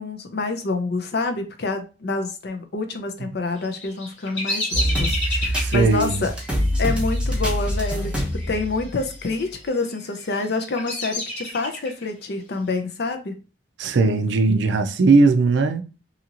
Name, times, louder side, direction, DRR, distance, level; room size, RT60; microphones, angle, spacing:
voice 1, 0.0-6.3 6.8-13.4, left 3 dB, 60° left, 0.5 m, -27 dB
Bird vocalization bird call bird song, 3.6-8.6 8.9-9.5 10.1-12.1, left 1 dB, 90° left, 1.5 m, -30 dB
sound 1, 4.7-9.4 9.9-10.0 10.9-11.0, equal, 5° right, 0.6 m, -25 dB
voice 2, 5.6-6.3 13.8-15.8, right 3 dB, 70° right, 0.4 m, -18 dB
2.9 x 2.8 x 2.5 m
head